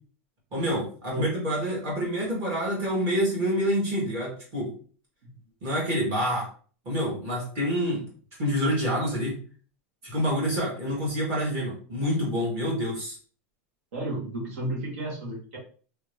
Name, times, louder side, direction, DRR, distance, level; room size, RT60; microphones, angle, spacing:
voice 1, 0.5-4.7 5.6-6.5 6.9-8.0 8.4-9.4 10.0-13.2, equal, 35° right, -4 dB, 2.0 m, -27 dB
voice 2, 13.9-15.6, right 1 dB, 70° right, -2 dB, 2.1 m, -32 dB
3.6 x 3.4 x 3.4 m, 0.42 s
supercardioid pair, 170°, 7 cm